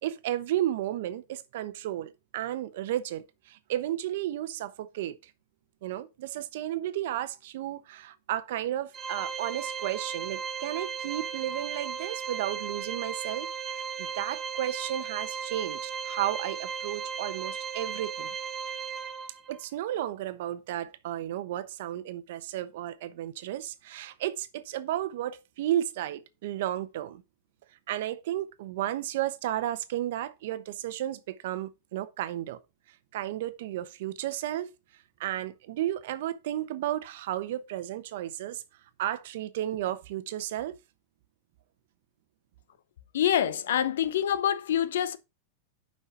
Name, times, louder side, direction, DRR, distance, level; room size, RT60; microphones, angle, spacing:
voice 1, 0.0-5.3 5.8-18.3 19.5-27.2 27.9-32.6 33.1-34.7 35.2-38.6 39.0-40.8, right 12 dB, 65° right, 0.9 m, -33 dB
Organ, 8.9-19.6, right 6 dB, 15° right, 0.9 m, -36 dB
voice 2, 43.1-45.2, left 10 dB, 85° left, 0.7 m, -26 dB
5.6 x 5.6 x 5.7 m
supercardioid pair, 160°, 0 cm